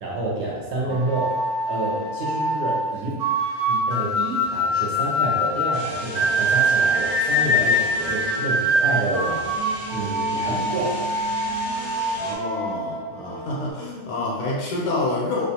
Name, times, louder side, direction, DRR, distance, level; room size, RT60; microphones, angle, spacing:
voice 1, 0.0-1.3 1.7-3.2 3.7-9.4 9.9-11.0, right 2 dB, 65° right, -4 dB, 0.8 m, -28 dB
sound 1, 0.9-13.7, equal, 80° right, 0.4 m, -24 dB
sound 2, 5.7-12.4, right 1 dB, 60° left, 0.7 m, -36 dB
voice 2, 12.2-15.5, left 2 dB, 80° left, -4 dB, 1.0 m, -28 dB
2.4 x 2.2 x 2.8 m, 1.3 s
omnidirectional pair, 1.5 m